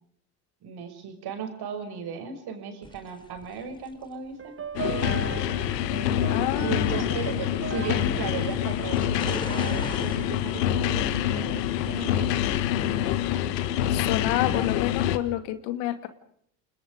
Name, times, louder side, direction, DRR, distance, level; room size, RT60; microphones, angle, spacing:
voice 1, 0.6-5.2 6.6-12.3, right 6 dB, 50° right, 6 dB, 6.0 m, -36 dB
sound 1, 2.8-15.2, left 1 dB, 10° left, 4.3 m, -45 dB
sound 2, 4.4-9.7, right 7 dB, 25° right, 1.7 m, -39 dB
sound 3, 4.7-15.2, left 11 dB, 80° left, 1.6 m, -26 dB
voice 2, 6.3-7.1 13.9-16.1, left 13 dB, 65° left, 11 dB, 2.5 m, -29 dB
29.0 x 21.0 x 5.2 m, 0.66 s
hypercardioid pair, 80°, 48 cm